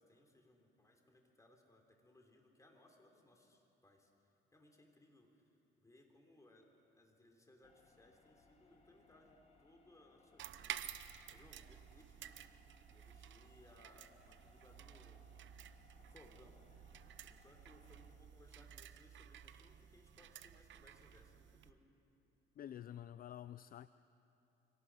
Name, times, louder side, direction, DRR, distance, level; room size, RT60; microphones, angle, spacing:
voice 1, 0.0-4.1 4.5-5.5 5.7-12.6 12.9-15.2 16.0-16.6 17.2-21.8, left 1 dB, 15° left, 2 dB, 3.6 m, -66 dB
sound 1, 7.6-18.2, left 4 dB, 30° left, 2.2 m, -70 dB
sound 2, 10.4-21.7, right 10 dB, 70° right, 0.8 m, -53 dB
voice 2, 22.6-23.9, left 11 dB, 50° left, 15 dB, 0.4 m, -49 dB
25.0 x 18.0 x 6.3 m, 3.0 s
cardioid pair, 90°, 20 cm